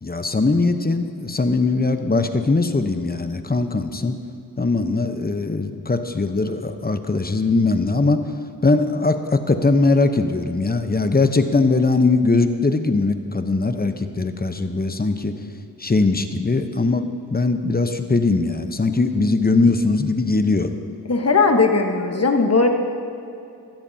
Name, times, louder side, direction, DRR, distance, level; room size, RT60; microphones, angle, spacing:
voice 1, 0.0-4.2 4.6-8.2 8.6-15.4 15.8-20.7, left 3 dB, 25° left, 8 dB, 0.9 m, -20 dB
voice 2, 21.1-22.7, left 4 dB, 40° left, 4 dB, 1.3 m, -17 dB
16.5 x 13.0 x 2.8 m, 2.6 s
cardioid pair, 45°, 40 cm